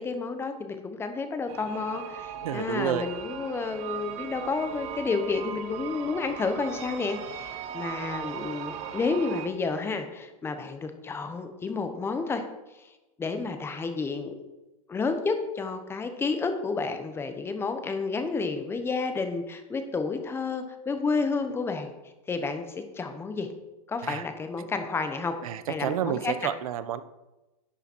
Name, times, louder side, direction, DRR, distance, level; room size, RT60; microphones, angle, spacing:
voice 1, 0.0-12.4 12.7-12.8 13.2-14.3 14.9-21.9 22.3-22.6 22.9-23.5 23.9-25.4 25.7-26.5, left 4 dB, 15° left, 7 dB, 1.0 m, -30 dB
sound 1, 1.5-9.5, right 8 dB, 40° right, 1.0 m, -38 dB
voice 2, 2.4-3.0 24.0-24.2 25.4-27.0, right 11 dB, 80° right, 14 dB, 0.8 m, -30 dB
11.0 x 7.0 x 4.5 m, 1.0 s
supercardioid pair, 145°, 18 cm